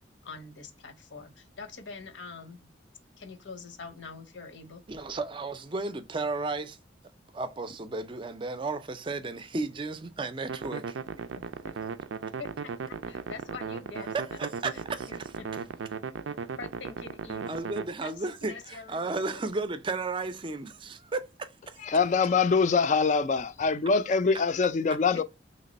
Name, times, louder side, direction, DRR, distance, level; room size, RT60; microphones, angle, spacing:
voice 1, 0.2-2.7 3.2-4.8 11.6-11.7 12.4-14.1 15.1-15.7 16.6-17.7 18.0-18.1 18.4-19.4 25.1-25.2, left 4 dB, 80° left, 0.8 m, -44 dB
voice 2, 4.9-6.8 7.3-11.0 14.0-15.3 17.5-21.8, right 3 dB, 25° right, 0.4 m, -34 dB
sound 1, 10.5-17.8, right 6 dB, 90° right, 0.4 m, -37 dB
voice 3, 21.8-25.2, left 5 dB, 40° left, 0.3 m, -24 dB
3.3 x 2.9 x 4.0 m
head